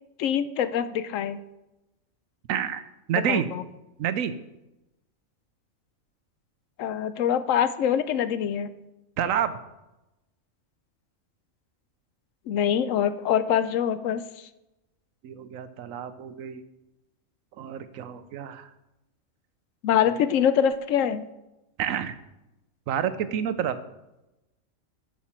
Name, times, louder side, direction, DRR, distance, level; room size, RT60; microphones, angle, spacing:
voice 1, 0.2-1.4 3.1-3.6 6.8-8.7 12.5-14.2 19.8-21.2, left 9 dB, 75° left, 13 dB, 0.9 m, -24 dB
voice 2, 2.5-2.8 3.1-3.5 4.0-4.3 9.2-9.6 15.2-16.6 17.6-18.7 21.8-22.2 22.9-23.8, right 9 dB, 80° right, 12 dB, 1.0 m, -28 dB
11.5 x 5.9 x 4.3 m, 0.96 s
omnidirectional pair, 1.4 m